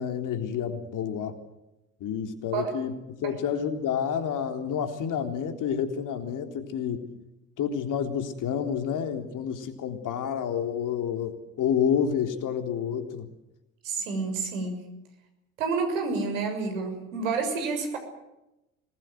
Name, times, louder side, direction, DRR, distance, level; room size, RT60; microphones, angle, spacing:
voice 1, 0.0-1.4 2.0-7.1 7.6-13.3, left 8 dB, 50° left, 7 dB, 3.7 m, -29 dB
voice 2, 13.8-14.8 15.6-18.0, right 4 dB, 75° right, 6 dB, 6.5 m, -29 dB
26.0 x 20.5 x 7.8 m, 0.94 s
hypercardioid pair, 65°, 40 cm